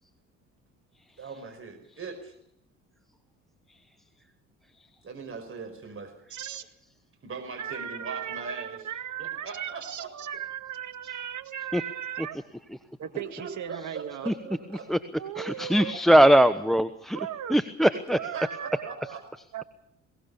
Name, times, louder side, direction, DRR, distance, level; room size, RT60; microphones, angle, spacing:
voice 1, 1.2-2.3 5.0-6.1 7.2-8.8 9.2-10.1 13.4-14.9 17.9-19.2, right 4 dB, 35° right, 5 dB, 5.1 m, -40 dB
voice 2, 6.3-6.7 7.6-12.4 13.0-14.3 15.2-16.3 17.1-17.6 18.2-19.2 19.5-19.6, right 10 dB, 55° right, 8 dB, 2.0 m, -37 dB
voice 3, 15.4-17.2 17.5-18.2, equal, ahead, 11 dB, 1.1 m, -20 dB
22.0 x 18.5 x 7.1 m, 0.76 s
hypercardioid pair, 55°, 36 cm